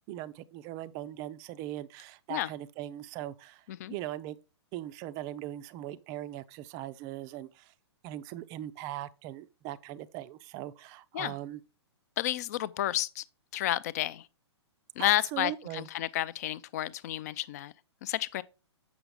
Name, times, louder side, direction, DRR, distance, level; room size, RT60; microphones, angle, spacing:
voice 1, 0.1-3.6 3.9-4.4 4.7-7.7 8.0-11.6 15.0-15.9, right 13 dB, 25° right, 0.4 m, -40 dB
voice 2, 12.2-13.2 13.5-14.3 15.0-17.7 18.0-18.4, left 14 dB, 35° left, 0.4 m, -31 dB
7.8 x 6.1 x 3.5 m
figure-of-eight pair, 115°, 15 cm